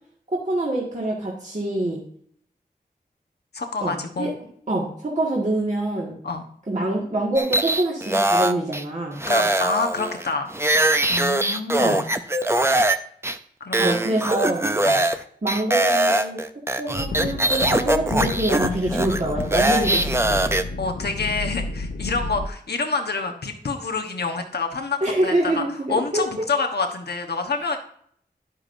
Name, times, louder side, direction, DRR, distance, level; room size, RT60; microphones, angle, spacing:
voice 1, 0.3-2.0 3.8-4.3 4.7-6.1 6.7-9.2 11.8-12.0 13.8-14.6 15.4-16.4 16.8-20.4 25.0-26.5, right 1 dB, 45° right, -5 dB, 2.0 m, -25 dB
voice 2, 3.5-4.3 6.2-6.4 9.2-10.5 11.1-12.0 13.6-14.2 14.8-15.0 19.8-20.0 20.8-25.6 25.9-27.8, left 4 dB, 85° left, 4 dB, 1.2 m, -27 dB
sound 1, 7.4-8.8 9.2-13.0 13.2-13.4 13.7-15.2 15.5-20.6, right 1 dB, 15° right, 0.6 m, -22 dB
sound 2, 17.0-22.5, left 3 dB, 70° left, 0.6 m, -30 dB
11.0 x 9.7 x 2.7 m, 0.62 s
wide cardioid pair, 75°, 16 cm